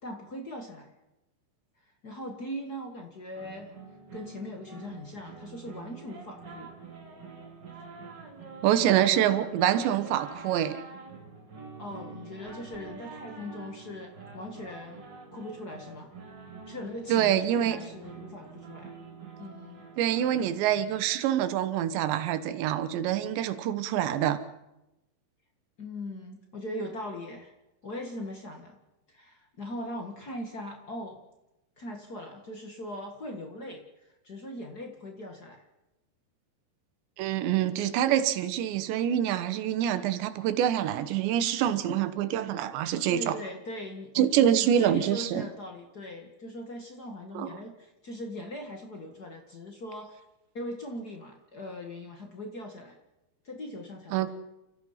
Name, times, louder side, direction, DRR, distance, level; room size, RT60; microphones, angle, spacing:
voice 1, 0.0-0.9 2.0-3.7 4.1-6.7 11.8-15.0 15.3-16.1 16.7-18.9 19.4-19.8 25.8-27.5 27.8-28.8 29.1-31.2 31.8-35.6 43.1-50.2 50.5-52.9 53.4-54.3, left 1 dB, 80° left, 0.8 m, -40 dB
sound 1, 3.3-20.5, right 4 dB, 30° right, 3.0 m, -46 dB
voice 2, 8.6-10.8 17.1-17.8 20.0-24.4 37.2-43.4 44.2-45.5 47.3-47.5 54.1-54.3, right 10 dB, 85° right, 3.4 m, -26 dB
30.0 x 15.0 x 5.7 m
omnidirectional pair, 5.0 m